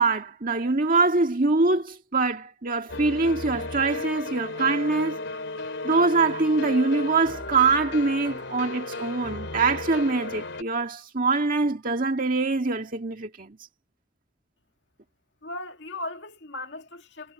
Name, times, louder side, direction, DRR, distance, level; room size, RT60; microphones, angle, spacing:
voice 1, 0.0-5.2 5.8-13.6, right 3 dB, 50° right, 1.9 m, -24 dB
sound 1, 2.9-10.6, left 2 dB, 90° left, 3.2 m, -34 dB
voice 2, 15.4-17.3, left 2 dB, 75° left, 2.0 m, -37 dB
head